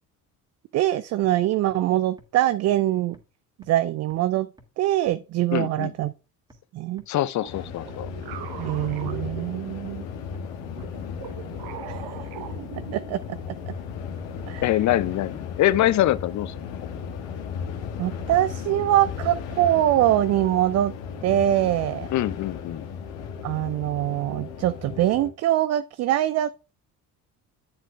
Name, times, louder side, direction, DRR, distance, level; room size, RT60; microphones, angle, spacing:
voice 1, 0.7-3.2 3.7-4.5 4.8-6.1 6.7-7.0 8.6-10.1 11.9-12.0 12.9-13.4 13.7-13.8 14.5-14.6 18.0-20.9 21.2-22.1 23.4-26.5, right 13 dB, 35° right, 0.4 m, -23 dB
sound 1, 1.2-1.3 1.7-1.8 2.2-2.3 2.7-2.8 3.1-3.2 3.6-3.7 4.1-4.2 4.6-4.7 5.1-5.2 5.5-5.6 6.0-6.1 6.5-6.6 7.0-7.1 7.5-7.6 7.9-8.0 8.4-8.5 8.9-9.0 9.4-9.5 9.9-10.0 10.3-10.4 10.8-10.9 11.3-11.4 11.8-11.9 12.3-12.4 12.7-12.8 13.2-13.3 13.7-13.8 14.2-14.3 14.7-14.8 15.1-15.2 15.6-15.7 16.1-16.2, right 1 dB, 10° right, 2.0 m, -51 dB
voice 2, 5.5-5.9 7.1-8.1 14.6-16.9 22.1-22.8, left 13 dB, 35° left, 0.6 m, -24 dB
sound 2, 7.4-10.1 10.7-13.4, right 10 dB, 55° right, 1.1 m, -41 dB
sound 3, 7.5-25.3, left 6 dB, 60° left, 1.7 m, -35 dB
9.9 x 7.7 x 2.3 m
figure-of-eight pair, 55°, 49 cm